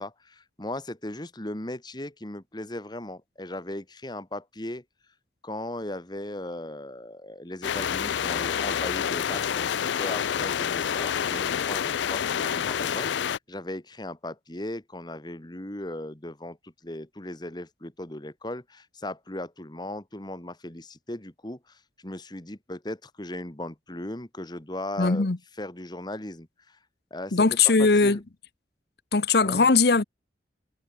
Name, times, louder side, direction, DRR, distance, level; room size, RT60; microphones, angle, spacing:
voice 1, 0.0-4.8 5.4-9.7 10.0-25.3 25.6-26.8 27.1-27.5 27.8-28.2 29.4-29.7, left 1 dB, 25° left, 1.8 m, -37 dB
sound 1, 7.6-13.4, left 8 dB, 85° left, 0.4 m, -28 dB
voice 2, 25.0-25.4 27.3-28.2 29.1-30.0, left 4 dB, 60° left, 0.9 m, -20 dB
head